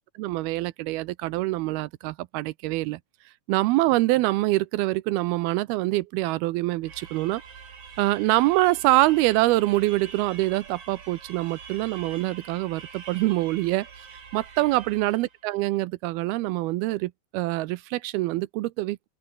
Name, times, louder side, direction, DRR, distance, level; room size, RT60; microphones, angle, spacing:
voice 1, 0.2-3.0 3.5-7.4 8.0-13.9 14.3-19.1, right 19 dB, 85° right, 2.6 m, -25 dB
sound 1, 6.8-15.4, right 6 dB, 60° right, 5.7 m, -45 dB
open air
omnidirectional pair, 4.5 m